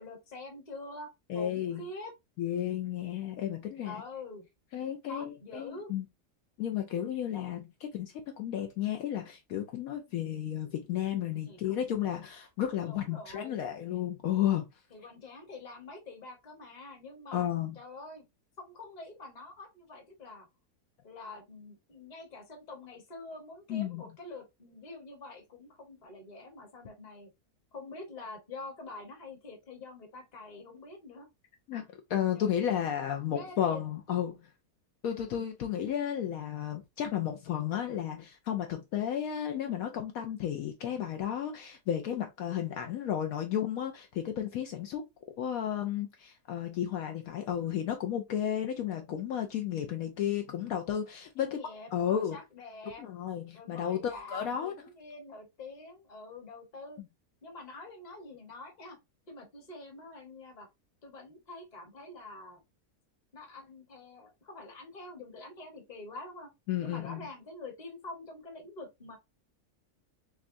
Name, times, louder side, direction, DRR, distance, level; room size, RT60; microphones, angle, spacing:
voice 1, 0.0-2.1 3.8-4.5 5.1-5.9 11.5-11.8 12.8-13.6 14.9-17.5 17.7-18.2 18.6-20.5 21.0-27.3 27.7-31.3 32.3-32.8 33.3-33.8 34.1-34.2 35.1-35.3 51.4-53.0 53.5-57.0 57.4-59.0 59.3-60.7 61.0-62.6 63.3-66.5 66.8-69.2, left 2 dB, 30° left, 1.0 m, -46 dB
voice 2, 1.3-1.8 2.4-4.0 4.7-6.0 6.6-14.7 17.3-17.8 23.7-24.0 31.7-34.4 35.0-45.0 45.4-51.6 51.9-52.4 53.0-54.7 57.0-57.1 66.7-67.3, left 10 dB, 70° left, 1.0 m, -33 dB
6.0 x 2.2 x 2.5 m
omnidirectional pair, 1.7 m